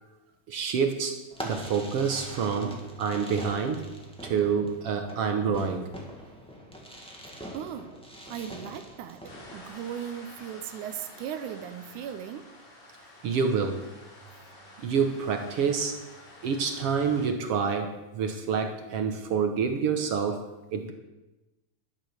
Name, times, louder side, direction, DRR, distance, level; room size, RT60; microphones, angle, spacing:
voice 1, 0.5-1.2 1.4-3.9 4.2-5.9 13.2-13.8 14.8-15.9 16.4-20.9, right 6 dB, 60° right, 5 dB, 1.8 m, -27 dB
Fireworks, 1.3-9.7, equal, ahead, 1.5 m, -43 dB
voice 2, 7.3-8.0 8.3-12.5, right 9 dB, 85° right, 7 dB, 2.3 m, -38 dB
sound 1, 9.2-17.3, left 1 dB, 80° left, 4.7 m, -50 dB
12.0 x 10.5 x 6.5 m, 1.1 s
omnidirectional pair, 3.5 m